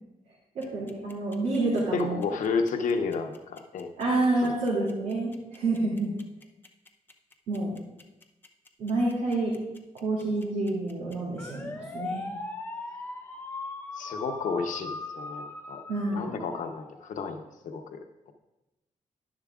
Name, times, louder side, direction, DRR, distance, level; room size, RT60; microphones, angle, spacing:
voice 1, 0.5-2.2 4.0-6.1 7.5-7.8 8.8-9.5 9.9-12.3 15.9-16.4, right 2 dB, 90° right, -7 dB, 2.6 m, -28 dB
sound 1, 0.6-17.1, left 2 dB, 15° left, 0.7 m, -40 dB
voice 2, 1.9-3.9 4.4-4.5 14.0-15.8 16.1-18.0, left 5 dB, 90° left, 5 dB, 0.8 m, -31 dB
11.0 x 10.5 x 2.4 m, 0.99 s
wide cardioid pair, 130°, 13 cm